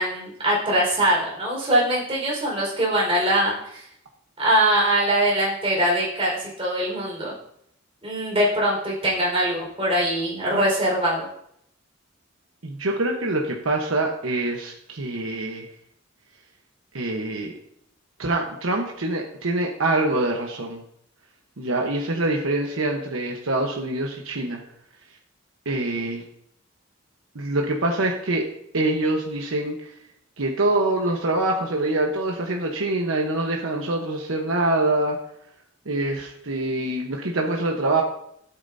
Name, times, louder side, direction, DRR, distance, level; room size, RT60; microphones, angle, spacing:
voice 1, 0.0-3.8 4.4-7.3 8.0-11.3, right 1 dB, 30° right, -4 dB, 4.7 m, -22 dB
voice 2, 12.6-15.7 16.9-17.5 18.2-20.8 21.6-24.6 25.6-26.2 27.3-28.5 28.7-29.9 30.4-35.2 35.9-38.0, right 2 dB, 90° right, 1 dB, 1.1 m, -25 dB
13.5 x 8.8 x 2.7 m, 0.73 s
head